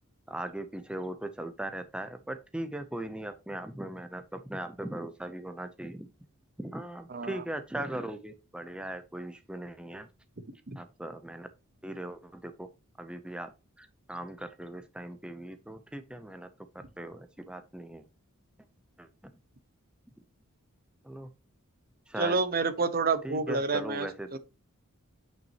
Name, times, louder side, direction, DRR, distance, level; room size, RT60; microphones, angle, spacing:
voice 1, 0.3-6.1 6.6-10.1 10.8-11.5 11.8-12.7 13.0-13.5 13.8-16.5 16.7-18.0 19.0-19.1 21.0-21.3 22.1-22.4 23.2-24.4, right 1 dB, 5° right, 0.5 m, -39 dB
voice 2, 7.1-7.4 10.7-10.8 22.2-24.4, right 4 dB, 45° right, 1.0 m, -29 dB
9.0 x 5.8 x 2.9 m
head